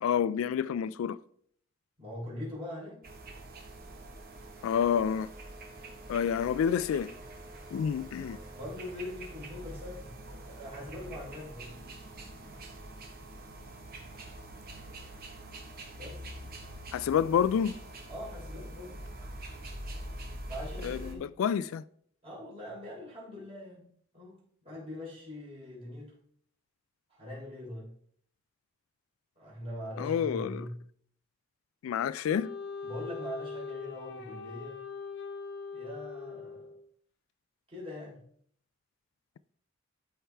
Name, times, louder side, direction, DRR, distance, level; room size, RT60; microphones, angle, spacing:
voice 1, 0.0-1.2 4.6-5.3 6.1-7.1 7.7-8.4 16.9-17.8 20.8-21.8 30.0-30.7 31.8-32.5, left 8 dB, 85° left, 0.3 m, -28 dB
voice 2, 2.0-3.0 8.5-10.1 10.5-11.8 16.0-16.2 18.1-19.0 20.5-21.3 22.2-23.9 24.1-26.1 27.1-27.9 29.4-30.8 32.8-34.8 35.7-36.7 37.7-38.2, left 1 dB, 30° right, 3.5 m, -42 dB
sound 1, 3.0-21.1, right 1 dB, 45° right, 1.2 m, -45 dB
Wind instrument woodwind instrument, 32.3-36.9, left 4 dB, 60° left, 0.7 m, -41 dB
12.5 x 4.6 x 3.4 m
head